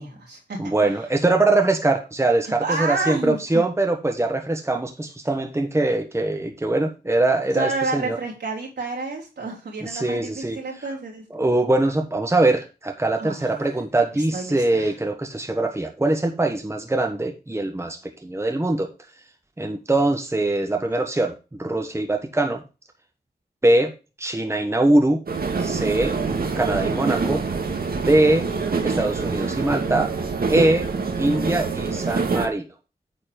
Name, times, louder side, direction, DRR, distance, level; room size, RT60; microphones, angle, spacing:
voice 1, 0.0-0.9 2.4-3.4 7.5-11.2 13.2-13.7 14.1-14.9 20.7-20.8, right 3 dB, 75° right, -3 dB, 3.3 m, -30 dB
voice 2, 0.6-8.2 9.8-10.6 11.3-18.9 19.6-22.6 23.6-23.9 24.2-25.2 25.6-26.1 26.6-27.4 28.0-28.4 28.8-30.1 30.5-30.9 31.2-32.6, right 2 dB, 15° right, 4 dB, 1.2 m, -22 dB
sound 1, 25.3-32.5, right 4 dB, 60° right, 1.6 m, -25 dB
9.1 x 4.1 x 5.1 m, 0.31 s
cardioid pair, 65°, 18 cm